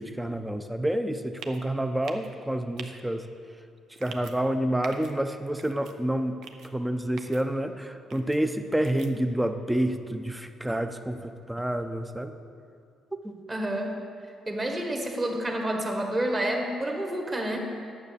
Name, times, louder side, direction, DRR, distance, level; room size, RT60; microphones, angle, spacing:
voice 1, 0.0-3.3 4.0-6.3 6.7-12.3 13.2-13.4, right 1 dB, 5° right, 8 dB, 0.6 m, -28 dB
sound 1, 1.4-1.6 2.0-2.3 2.8-2.9 4.0-4.3 4.8-5.1 5.6-5.9 6.4-6.7 7.2-7.4 8.1-8.4 8.8-9.1, right 6 dB, 80° right, 0.7 m, -44 dB
voice 2, 13.5-13.9 14.5-17.6, right 1 dB, 25° right, 2 dB, 1.6 m, -29 dB
9.4 x 7.1 x 6.8 m, 2.4 s
cardioid pair, 110°, 0 cm